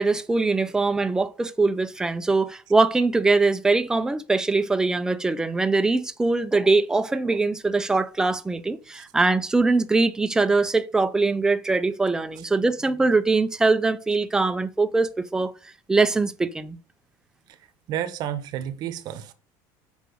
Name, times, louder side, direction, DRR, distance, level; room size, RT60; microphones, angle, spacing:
voice 1, 0.0-15.5 15.9-16.8, right 3 dB, 5° right, 0.4 m, -22 dB
voice 2, 17.9-19.3, right 10 dB, 45° right, 0.9 m, -31 dB
6.6 x 5.1 x 5.2 m
cardioid pair, 160°, 9 cm